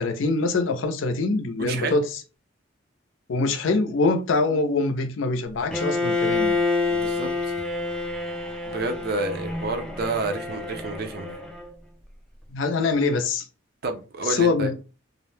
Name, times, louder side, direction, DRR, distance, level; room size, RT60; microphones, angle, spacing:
voice 1, 0.0-2.0 3.3-6.6 12.5-13.5 14.2-14.7, left 3 dB, 85° left, 0.5 m, -24 dB
voice 2, 1.6-2.0 4.5-4.6 6.9-7.5 8.7-11.4 13.8-14.7, right 3 dB, 55° right, 0.5 m, -30 dB
Bowed string instrument, 5.7-11.7, left 3 dB, 5° left, 0.4 m, -27 dB
2.4 x 2.0 x 3.1 m
head